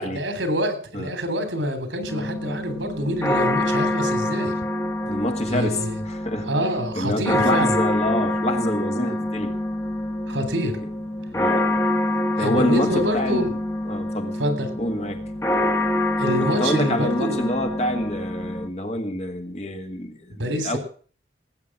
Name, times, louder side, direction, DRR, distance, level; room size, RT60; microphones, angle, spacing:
voice 1, 0.0-4.6 5.5-6.0 6.4-7.7 10.3-10.7 12.4-13.5 14.4-14.7 16.2-17.5 20.4-20.8, equal, 85° right, 3.4 m, -26 dB
sound 1, 2.1-18.7, left 1 dB, 15° left, 1.5 m, -26 dB
voice 2, 4.8-5.8 6.1-6.5 6.9-9.5 11.3-11.7 12.4-13.5 13.9-14.4 14.8-15.2 16.4-20.8, left 1 dB, 35° left, 1.9 m, -27 dB
18.0 x 8.6 x 6.0 m
head